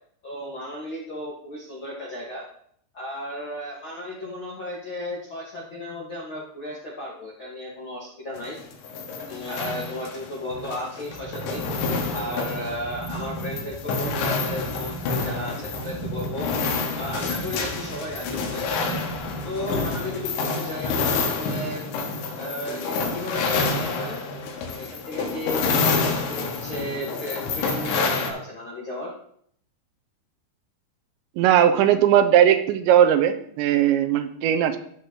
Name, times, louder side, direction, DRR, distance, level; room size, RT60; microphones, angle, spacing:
voice 1, 0.2-2.5 2.9-8.6 9.3-11.6 12.1-16.5 16.9-18.7 19.4-21.9 22.4-24.2 24.7-29.1, left 1 dB, 60° left, -6 dB, 1.2 m, -34 dB
sound 1, 8.4-28.3, left 4 dB, 90° left, 3.8 m, -28 dB
sound 2, 11.1-19.6, right 2 dB, 45° right, 5.3 m, -37 dB
voice 2, 31.4-34.8, right 10 dB, 80° right, 8 dB, 2.9 m, -18 dB
15.5 x 6.5 x 3.0 m, 0.66 s
omnidirectional pair, 5.2 m